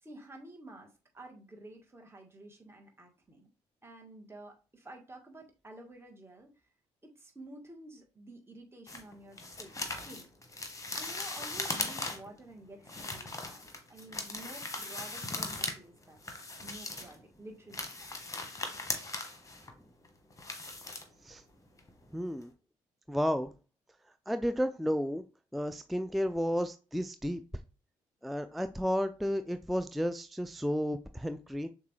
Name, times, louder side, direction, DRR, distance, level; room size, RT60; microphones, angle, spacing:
voice 1, 0.0-3.5 3.8-6.5 7.0-10.5 10.9-16.2 16.6-17.9, right 1 dB, 15° right, 1.3 m, -51 dB
sound 1, 8.9-12.4 12.8-15.8 16.0-17.2 17.6-21.5 21.8-22.0 22.4-22.5, left 2 dB, 20° left, 1.1 m, -39 dB
voice 2, 22.1-22.5 23.1-23.5 24.3-25.2 25.5-27.4 28.2-31.7, equal, ahead, 0.3 m, -32 dB
6.5 x 2.4 x 3.1 m
hypercardioid pair, 45°, 15 cm